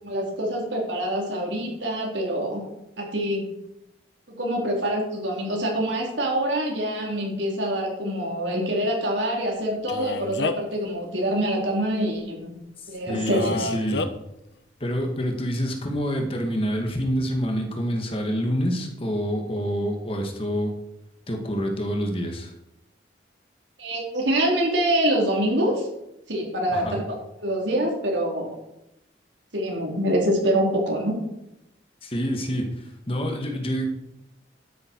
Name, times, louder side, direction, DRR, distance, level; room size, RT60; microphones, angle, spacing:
voice 1, 0.0-2.7 3.0-3.5 4.3-12.5 12.9-13.6 23.8-25.9 26.3-27.1 27.4-28.5 29.5-31.2, right 1 dB, 85° right, -1 dB, 4.2 m, -25 dB
Male speech man speaking, 9.9-10.8 13.3-14.1, left 3 dB, 75° left, 0.9 m, -29 dB
voice 2, 13.1-14.0 14.8-20.7 21.3-22.5 26.7-27.0 32.0-33.9, equal, 30° left, 3 dB, 2.0 m, -27 dB
12.5 x 11.0 x 4.8 m, 0.86 s
head